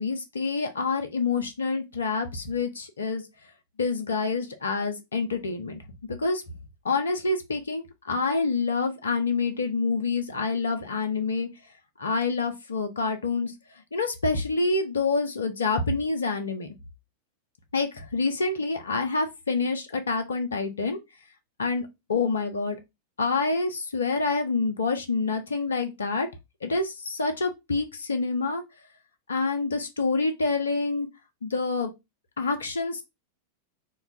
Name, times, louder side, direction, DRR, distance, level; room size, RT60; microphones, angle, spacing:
voice 1, 0.0-3.2 3.8-5.8 6.1-6.4 6.8-11.5 12.0-13.5 13.9-16.7 17.7-21.0 21.6-22.8 23.2-26.3 26.6-28.6 29.3-31.1 31.4-31.9 32.4-33.0, left 4 dB, 70° left, 0.4 m, -27 dB
2.2 x 2.2 x 3.7 m
figure-of-eight pair, 90°, 0 cm